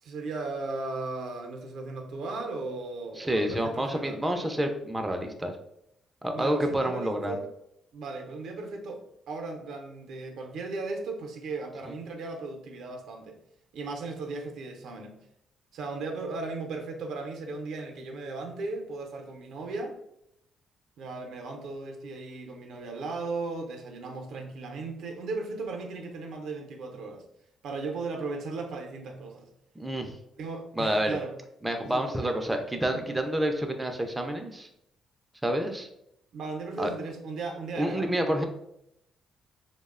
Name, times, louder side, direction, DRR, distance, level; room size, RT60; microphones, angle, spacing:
voice 1, 0.0-4.2 6.3-7.5 7.9-13.4 13.7-15.2 15.7-20.0 21.0-27.2 27.6-29.5 30.4-31.3 31.8-32.4 33.1-33.2 36.3-38.1, right 3 dB, 75° right, 3 dB, 0.4 m, -36 dB
voice 2, 3.2-5.6 6.2-7.3 29.8-30.2 30.8-31.2 31.6-34.7 35.4-35.9 36.8-36.9 37.8-38.4, right 1 dB, 10° right, 4 dB, 0.3 m, -28 dB
2.8 x 2.0 x 2.3 m, 0.77 s
cardioid pair, 90°, 0 cm